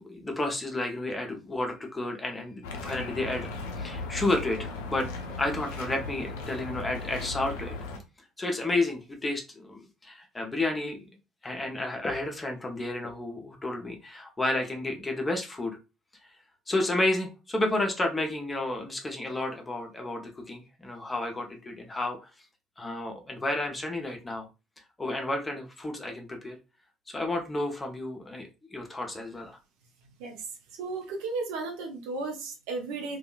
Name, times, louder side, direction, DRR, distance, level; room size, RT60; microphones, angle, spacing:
voice 1, 0.0-7.8 8.4-11.1 11.4-15.8 16.7-22.2 22.8-24.5 25.0-26.6 27.1-29.6, left 2 dB, 20° left, 2 dB, 0.8 m, -31 dB
sound 1, 2.6-8.0, left 3 dB, 70° left, 0.5 m, -37 dB
voice 2, 30.8-33.2, right 3 dB, 65° right, 2 dB, 0.6 m, -34 dB
2.7 x 2.4 x 2.2 m, 0.29 s
figure-of-eight pair, 55°, 0 cm